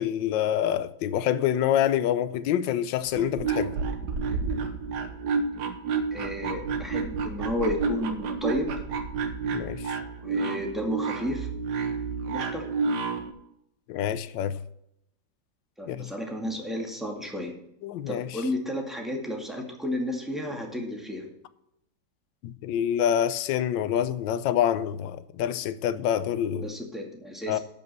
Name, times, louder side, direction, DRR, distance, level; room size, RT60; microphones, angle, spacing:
voice 1, 0.0-3.7 9.5-10.0 13.9-14.6 15.9-16.1 17.8-18.4 22.4-26.7 27.5-27.6, left 10 dB, 85° left, 1.3 m, -26 dB
sound 1, 3.1-13.3, right 5 dB, 65° right, 1.6 m, -30 dB
voice 2, 6.1-8.7 10.2-11.5 12.3-12.7 15.8-17.5 18.1-21.3 26.6-27.6, left 1 dB, ahead, 2.0 m, -32 dB
12.0 x 5.5 x 6.8 m
omnidirectional pair, 2.0 m